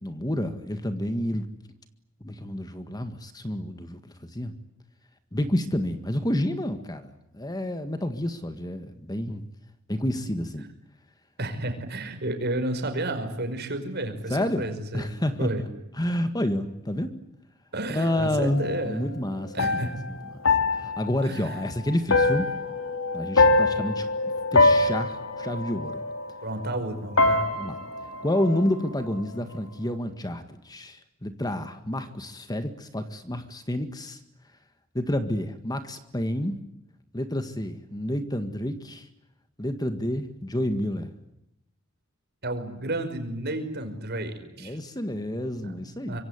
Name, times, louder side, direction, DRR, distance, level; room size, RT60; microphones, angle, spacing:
voice 1, 0.0-1.4 2.2-4.5 5.3-9.4 9.9-10.7 14.3-14.6 14.9-15.7 16.0-17.1 17.9-20.2 20.8-22.5 23.1-24.1 24.5-26.0 27.6-27.8 28.2-34.2 34.9-36.6 37.1-39.1 39.6-41.1 44.6-46.2, left 1 dB, 20° left, 9 dB, 1.8 m, -29 dB
voice 2, 11.4-15.1 15.4-15.6 17.7-19.1 19.5-19.9 21.2-21.6 26.4-27.5 42.4-44.8 45.6-46.2, right 1 dB, 55° right, 7 dB, 5.4 m, -31 dB
sound 1, 18.0-26.9 27.2-29.2, left 3 dB, 85° left, 3.4 m, -25 dB
25.5 x 24.0 x 9.6 m, 0.84 s
head